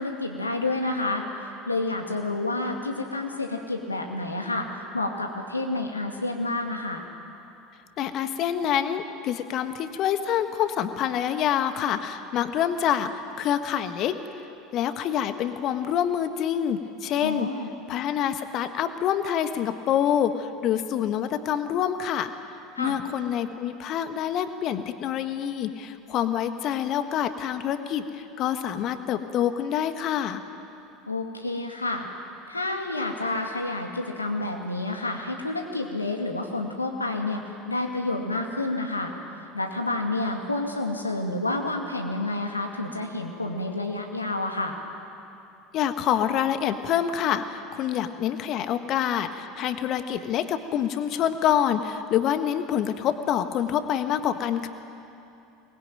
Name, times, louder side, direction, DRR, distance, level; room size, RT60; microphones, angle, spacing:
voice 1, 0.0-7.0 17.2-17.7 22.8-23.0 31.1-32.1 32.5-44.8, left 2 dB, 85° left, 3 dB, 2.3 m, -29 dB
voice 2, 8.0-14.2 14.7-17.5 17.9-22.3 22.8-30.4 45.7-54.7, left 9 dB, 45° left, 9 dB, 1.5 m, -26 dB
24.0 x 21.0 x 9.1 m, 2.7 s
figure-of-eight pair, 75°, 0 cm